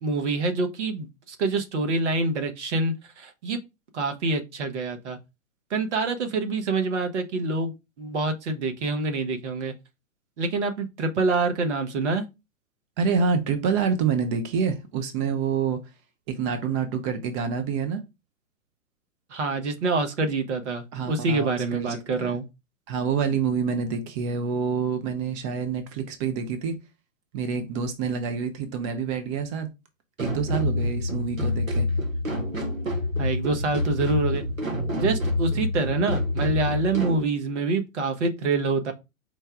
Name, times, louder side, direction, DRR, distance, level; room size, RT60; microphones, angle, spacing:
voice 1, 0.0-3.6 3.9-5.2 5.7-9.7 10.4-12.2 19.3-22.4 33.2-34.4 35.0-38.9, right 3 dB, 60° right, 1.1 m, -26 dB
voice 2, 13.0-15.8 16.3-18.0 20.9-22.4 22.9-26.8 27.3-29.7 30.2-31.9, right 6 dB, 25° right, 0.5 m, -27 dB
sound 1, 30.2-37.2, left 2 dB, 80° right, 1.3 m, -27 dB
4.5 x 2.2 x 4.5 m
figure-of-eight pair, 110°, 39 cm